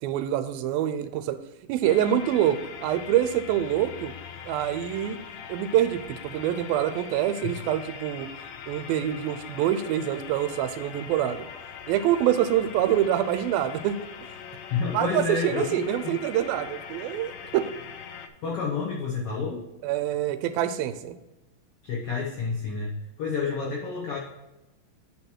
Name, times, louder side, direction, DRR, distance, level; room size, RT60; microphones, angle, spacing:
voice 1, 0.0-1.4 1.7-4.1 4.5-5.2 5.5-8.3 8.7-11.5 11.9-14.0 14.9-17.7 19.8-21.2, right 11 dB, 90° right, 10 dB, 2.5 m, -25 dB
sound 1, 1.8-18.3, left 7 dB, 90° left, 2.6 m, -42 dB
voice 2, 14.7-16.1 18.4-19.6 21.8-22.9 23.2-24.2, left 5 dB, 60° left, -2 dB, 1.6 m, -29 dB
8.5 x 5.6 x 4.5 m, 0.99 s
omnidirectional pair, 4.2 m